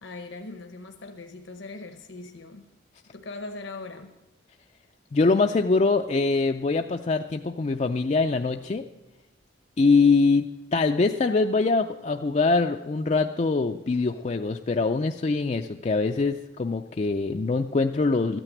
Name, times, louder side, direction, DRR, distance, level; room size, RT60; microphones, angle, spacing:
voice 1, 0.0-2.7 3.1-4.1, left 3 dB, 70° left, 5 dB, 0.9 m, -40 dB
voice 2, 5.1-8.8 9.8-10.5 10.7-18.4, left 3 dB, 35° left, 5 dB, 0.4 m, -23 dB
13.5 x 9.0 x 7.8 m, 1.0 s
head